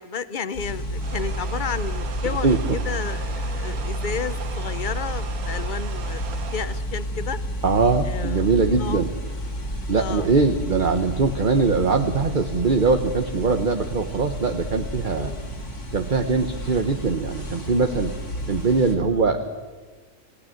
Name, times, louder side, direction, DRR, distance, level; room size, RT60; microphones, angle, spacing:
voice 1, 0.0-7.4 8.1-8.5 8.8-9.0 10.0-10.3 15.0-15.5 19.1-19.3, left 6 dB, 45° left, 14 dB, 0.7 m, -32 dB
sound 1, 0.5-19.0, equal, 90° left, 3.6 m, -30 dB
sound 2, 1.0-6.9, right 7 dB, 75° right, 1.5 m, -39 dB
voice 2, 7.6-9.1 9.9-15.3 15.9-18.2 18.5-19.5, right 4 dB, 40° right, 7 dB, 1.0 m, -22 dB
28.0 x 17.5 x 7.8 m, 1.4 s
omnidirectional pair, 1.6 m